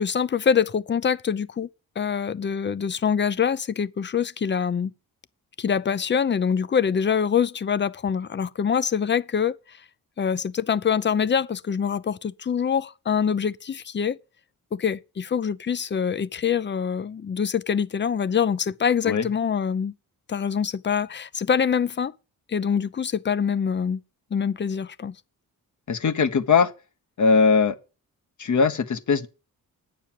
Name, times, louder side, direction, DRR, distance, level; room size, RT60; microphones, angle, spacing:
voice 1, 0.0-1.7 2.0-4.9 5.6-9.6 10.2-14.2 14.7-19.9 20.3-22.1 22.5-24.0 24.3-25.1, left 7 dB, 30° left, 0.6 m, -24 dB
voice 2, 25.9-26.7 27.2-27.7 28.4-29.3, left 5 dB, 55° left, 1.2 m, -20 dB
8.9 x 6.8 x 7.5 m
cardioid pair, 100°, 36 cm